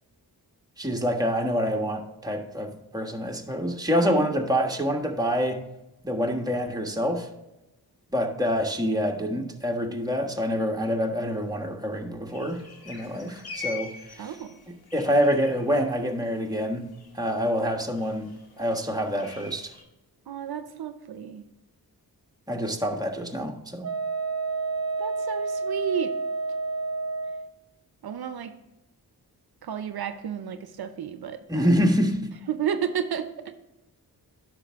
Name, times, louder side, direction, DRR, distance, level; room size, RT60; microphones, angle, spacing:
voice 1, 0.8-5.6 6.0-7.3 8.1-14.3 14.7-16.9 17.1-18.3 18.6-19.7 22.5-23.9 31.5-32.3, equal, 10° right, 2 dB, 1.4 m, -26 dB
voice 2, 4.0-4.3 14.2-14.5 20.3-21.4 25.0-26.1 28.0-28.5 29.6-31.7 32.5-33.5, right 8 dB, 70° right, 10 dB, 0.7 m, -32 dB
sound 1, 12.3-19.8, left 4 dB, 70° left, 1.8 m, -44 dB
Wind instrument woodwind instrument, 23.8-27.5, right 3 dB, 40° right, 1.2 m, -29 dB
9.8 x 6.1 x 3.5 m, 0.98 s
cardioid pair, 55°, 39 cm